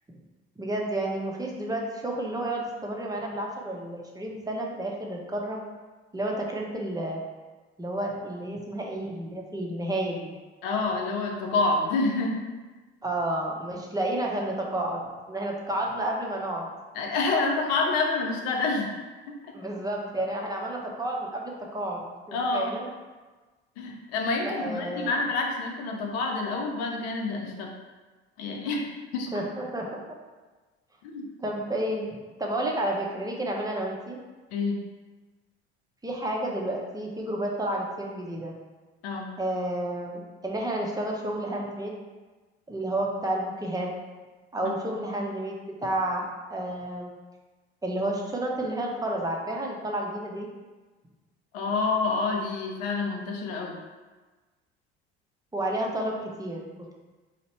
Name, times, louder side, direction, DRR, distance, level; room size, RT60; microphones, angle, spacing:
voice 1, 0.6-5.6 6.1-7.2 7.8-10.3 13.0-15.0 15.3-16.7 19.5-22.9 24.4-25.2 29.3-29.9 31.4-34.2 36.0-38.5 39.4-42.0 42.7-43.9 44.5-47.1 47.8-50.5 55.5-56.9, right 1 dB, 10° right, -1 dB, 0.8 m, -31 dB
voice 2, 10.6-12.4 16.9-19.0 19.3-19.4 22.3-22.7 23.8-27.7 28.4-28.9 29.1-29.4 31.0-31.3 34.5-34.8 39.0-39.3 44.6-44.7 51.5-53.8, left 3 dB, 65° left, 1 dB, 0.8 m, -28 dB
3.0 x 2.8 x 4.2 m, 1.3 s
figure-of-eight pair, 60°, 33 cm